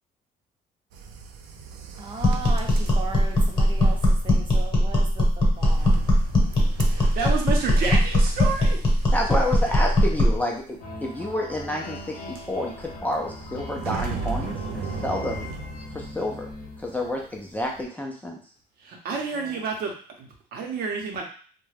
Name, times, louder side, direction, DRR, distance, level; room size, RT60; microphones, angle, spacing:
sound 1, 0.9-16.8 17.1-17.8, right 6 dB, 85° right, 0.4 m, -38 dB
voice 1, 2.0-6.0 19.1-19.6, right 5 dB, 30° right, 1 dB, 0.7 m, -38 dB
sound 2, 2.2-10.4, left 1 dB, 30° left, 0.9 m, -20 dB
voice 2, 6.9-8.8 9.3-9.4 18.8-19.9 20.2-21.2, right 4 dB, 65° right, 0 dB, 0.8 m, -29 dB
voice 3, 9.1-15.5 15.9-16.5 16.8-18.4, left 1 dB, 10° left, -1 dB, 0.4 m, -29 dB
sound 3, 10.8-17.4, left 2 dB, 60° left, 0.8 m, -40 dB
2.3 x 2.1 x 3.2 m, 0.43 s
cardioid pair, 110°, 17 cm